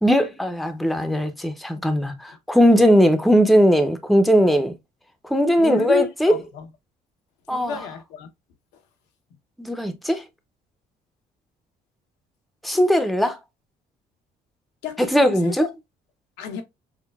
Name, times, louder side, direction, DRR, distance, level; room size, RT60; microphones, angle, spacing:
voice 1, 0.0-4.7 5.3-6.4 7.5-7.9 9.6-10.2 12.6-13.4 15.0-15.7, equal, ahead, 0.5 m, -19 dB
voice 2, 5.6-6.7 7.5-8.3 14.8-15.7 16.4-16.6, left 7 dB, 90° left, 0.8 m, -31 dB
5.7 x 2.1 x 2.3 m
cardioid pair, 110°, 17 cm